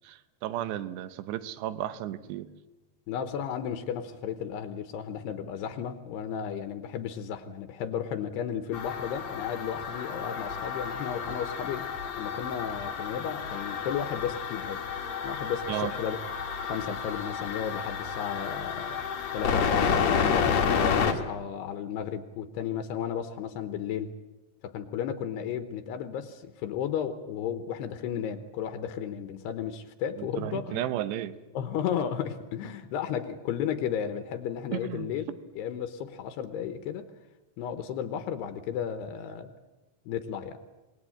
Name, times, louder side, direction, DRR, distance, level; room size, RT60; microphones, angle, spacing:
voice 1, 0.0-2.5 11.3-11.4 15.7-15.9 30.2-31.3 34.7-35.1, right 12 dB, 80° right, 13 dB, 3.1 m, -33 dB
voice 2, 3.1-11.9 12.2-14.8 15.2-16.2 16.6-19.0 19.3-20.0 20.3-24.1 24.6-30.8 31.5-37.1 37.6-39.5 40.1-40.6, left 8 dB, 75° left, 9 dB, 3.0 m, -34 dB
sound 1, 8.7-21.1, left 6 dB, 55° left, 2.2 m, -30 dB
26.5 x 19.5 x 8.7 m, 1.1 s
omnidirectional pair, 4.9 m